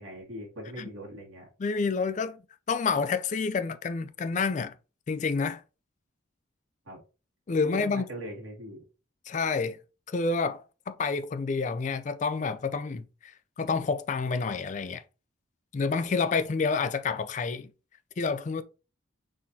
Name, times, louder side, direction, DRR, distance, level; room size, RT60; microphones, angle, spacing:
voice 1, 0.0-1.5 6.9-7.0 7.6-8.8, equal, 85° right, 1.8 m, -41 dB
voice 2, 1.6-2.4 2.7-4.7 5.1-5.6 7.5-8.0 9.3-9.8 10.1-13.3 13.6-15.0 15.7-17.7 18.2-18.6, left 4 dB, 35° left, 0.3 m, -29 dB
4.3 x 3.7 x 2.7 m
head